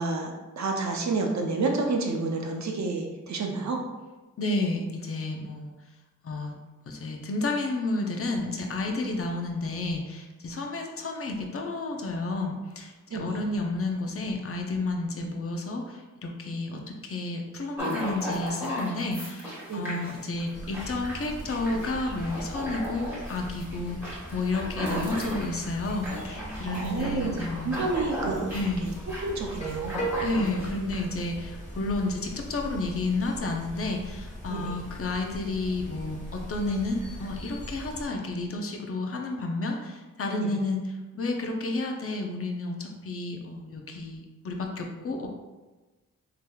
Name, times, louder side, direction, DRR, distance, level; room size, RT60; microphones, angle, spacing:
voice 1, 0.0-3.8 13.1-13.4 19.7-20.0 26.7-28.5 28.8-28.9 29.2-30.1 34.5-34.8 40.4-40.5, right 3 dB, 55° right, 2 dB, 0.6 m, -29 dB
voice 2, 4.4-5.7 6.2-6.6 6.9-27.8 28.5-28.9 30.2-40.8 41.1-45.3, left 2 dB, 40° left, 2 dB, 0.5 m, -31 dB
sound 1, 17.8-31.2, equal, 5° right, 1.4 m, -36 dB
sound 2, 20.5-38.1, right 1 dB, 20° left, 1.0 m, -39 dB
3.3 x 2.8 x 2.2 m, 1.2 s
cardioid pair, 60°, 34 cm